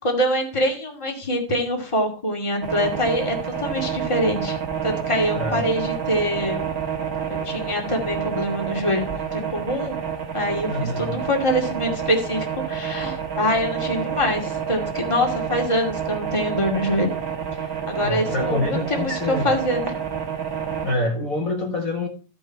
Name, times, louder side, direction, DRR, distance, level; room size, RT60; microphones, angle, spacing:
voice 1, 0.0-4.6 4.8-6.6 7.3-9.9 10.3-17.1 17.9-20.0, equal, 15° left, 1 dB, 2.3 m, -24 dB
sound 1, 2.6-20.9, right 7 dB, 50° right, 1.8 m, -29 dB
voice 2, 5.3-5.8 10.7-11.2 18.0-19.5 20.8-22.1, left 2 dB, 45° left, 0 dB, 2.0 m, -26 dB
15.0 x 5.6 x 4.5 m, 0.37 s
omnidirectional pair, 2.1 m